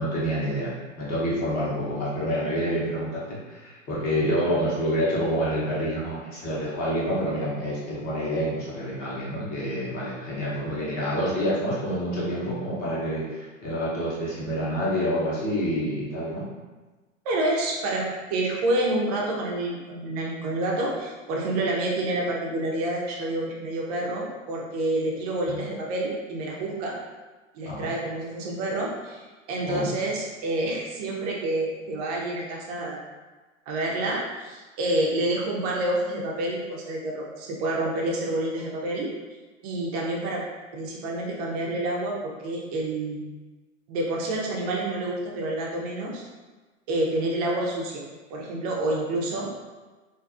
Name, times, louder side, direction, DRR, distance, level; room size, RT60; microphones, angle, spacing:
voice 1, 0.0-16.5 25.5-25.6 27.6-27.9 29.7-29.9, equal, 25° left, -7 dB, 0.8 m, -28 dB
voice 2, 17.2-27.0 27.5-33.0 33.7-39.1 39.6-40.4 40.7-43.2 43.9-46.2 46.9-48.0 48.3-49.5, right 1 dB, 30° right, -2 dB, 0.5 m, -28 dB
2.5 x 2.4 x 2.4 m, 1.3 s
hypercardioid pair, 135°, 39 cm